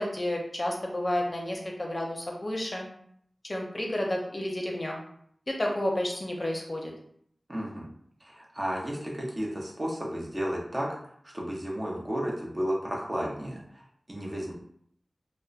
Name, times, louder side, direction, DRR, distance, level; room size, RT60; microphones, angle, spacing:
voice 1, 0.0-2.9 3.4-5.0 5.5-6.9, left 1 dB, 40° left, 0 dB, 0.6 m, -31 dB
voice 2, 7.5-7.9 8.2-10.9 11.3-13.8 14.1-14.5, equal, 30° right, -3 dB, 0.7 m, -33 dB
2.9 x 2.0 x 2.4 m, 0.66 s
wide cardioid pair, 60°, 0 cm